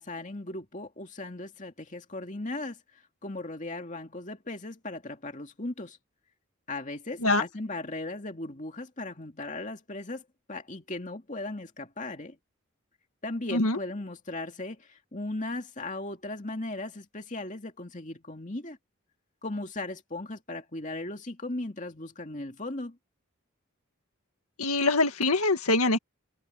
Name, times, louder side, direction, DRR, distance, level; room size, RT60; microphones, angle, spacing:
voice 1, 0.0-6.0 6.7-12.4 13.2-18.8 19.4-23.0, left 2 dB, 35° left, 2.4 m, -37 dB
voice 2, 24.6-26.0, left 2 dB, 90° left, 2.1 m, -24 dB
head